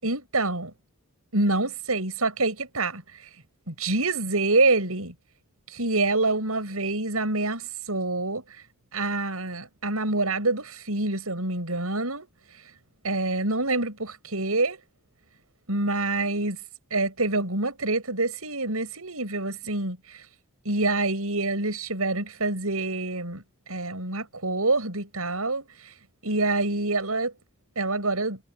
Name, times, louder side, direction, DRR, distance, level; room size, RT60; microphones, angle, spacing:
voice 1, 0.0-0.7 1.3-3.0 3.7-5.1 5.7-8.4 8.9-12.3 13.0-14.8 15.7-16.6 16.9-20.2 20.6-23.4 23.7-25.9 26.2-27.3 27.7-28.4, right 2 dB, 80° right, 6.8 m, -26 dB
head